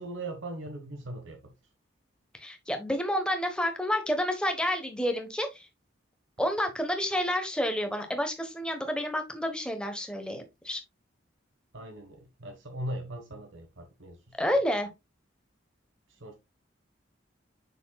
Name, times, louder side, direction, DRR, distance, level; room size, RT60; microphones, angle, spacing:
voice 1, 0.0-1.5 11.7-14.4 16.1-16.3, right 1 dB, 75° right, 1.3 m, -39 dB
voice 2, 2.4-5.7 6.4-10.8 14.4-14.9, equal, 5° left, 1.1 m, -29 dB
7.2 x 6.1 x 2.3 m
head